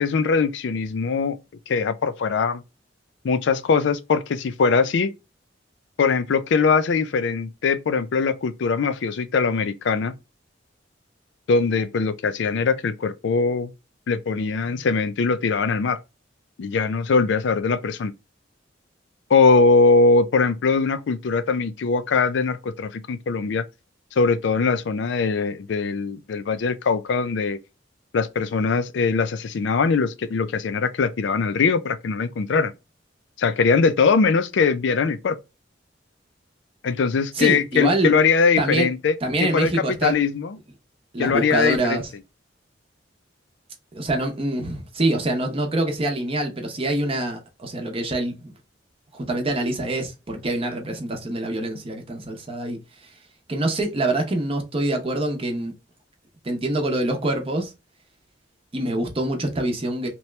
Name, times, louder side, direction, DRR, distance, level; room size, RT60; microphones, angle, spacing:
voice 1, 0.0-1.4 1.7-2.6 3.2-5.1 6.0-10.1 11.5-13.7 14.1-16.0 16.6-18.1 19.3-23.6 24.2-27.6 28.1-32.7 33.4-35.4 36.8-39.1 39.4-40.6 41.2-42.0, left 4 dB, 70° left, 0.4 m, -21 dB
voice 2, 37.3-38.1 38.6-38.9 39.2-40.2 41.1-42.1 43.9-48.5 49.1-53.1 53.5-55.7 56.4-57.7 58.7-60.1, right 1 dB, 30° right, 0.7 m, -25 dB
2.8 x 2.2 x 3.1 m
head